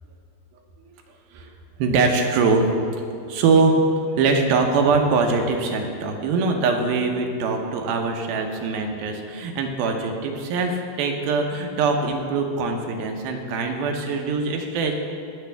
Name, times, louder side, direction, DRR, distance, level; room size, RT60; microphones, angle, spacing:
voice 1, 1.8-2.7 3.3-3.8 4.1-14.9, right 4 dB, 80° right, 3 dB, 2.7 m, -22 dB
21.5 x 7.3 x 3.4 m, 2.5 s
omnidirectional pair, 4.2 m